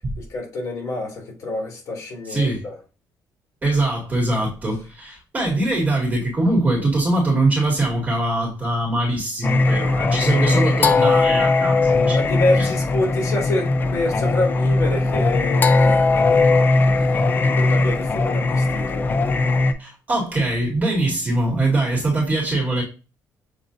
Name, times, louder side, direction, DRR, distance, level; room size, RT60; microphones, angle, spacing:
voice 1, 0.2-2.8 10.4-10.7 12.1-16.7 17.6-19.1, left 2 dB, 50° left, 2.4 m, -27 dB
voice 2, 2.2-2.7 3.6-12.2 12.5-12.7 19.8-22.8, right 2 dB, 20° right, 2.0 m, -22 dB
Singing, 9.4-19.7, left 3 dB, 30° left, 0.5 m, -19 dB
6.7 x 3.0 x 2.6 m
cardioid pair, 130°, 7 cm